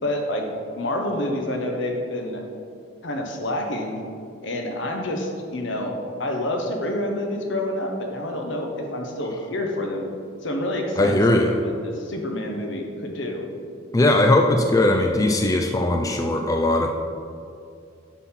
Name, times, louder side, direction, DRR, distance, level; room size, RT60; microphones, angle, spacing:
voice 1, 0.0-0.4 0.7-2.4 3.0-4.0 4.4-5.9 6.2-10.1 10.4-13.5, left 1 dB, 65° left, 2 dB, 1.2 m, -28 dB
voice 2, 11.0-11.5 13.9-16.9, left 1 dB, 20° left, 3 dB, 0.4 m, -19 dB
10.0 x 4.2 x 5.7 m, 2.4 s
head